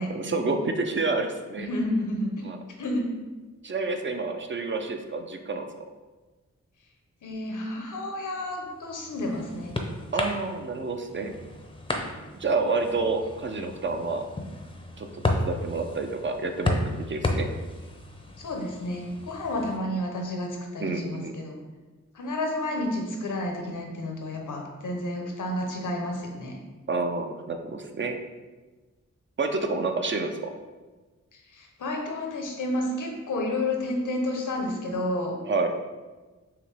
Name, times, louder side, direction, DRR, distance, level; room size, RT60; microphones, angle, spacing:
voice 1, 0.1-1.7 2.4-2.6 3.6-5.7 10.1-11.3 12.3-14.2 15.0-17.5 20.8-21.4 26.9-28.2 29.4-30.3 35.4-35.7, right 3 dB, 40° right, 5 dB, 0.5 m, -29 dB
voice 2, 1.6-2.5 2.8-3.1 7.2-9.7 18.4-21.6 22.1-26.6 31.5-35.4, left 1 dB, 80° left, 1 dB, 0.8 m, -30 dB
sound 1, 8.7-19.8, left 1 dB, 15° left, 0.6 m, -33 dB
4.9 x 3.0 x 3.3 m, 1.3 s
cardioid pair, 55°, 30 cm